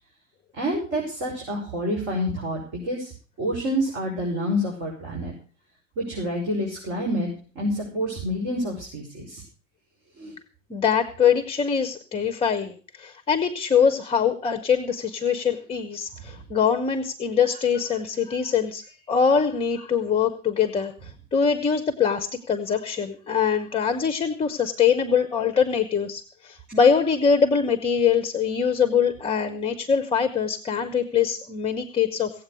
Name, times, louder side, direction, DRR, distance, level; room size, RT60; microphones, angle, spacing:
voice 1, 0.6-3.1 3.4-5.3 6.0-7.3 7.5-9.4 10.2-10.3, equal, 40° right, -2 dB, 6.0 m, -28 dB
voice 2, 10.7-32.3, left 7 dB, 15° left, 9 dB, 1.1 m, -23 dB
17.5 x 7.9 x 6.5 m, 0.40 s
figure-of-eight pair, 85°, 39 cm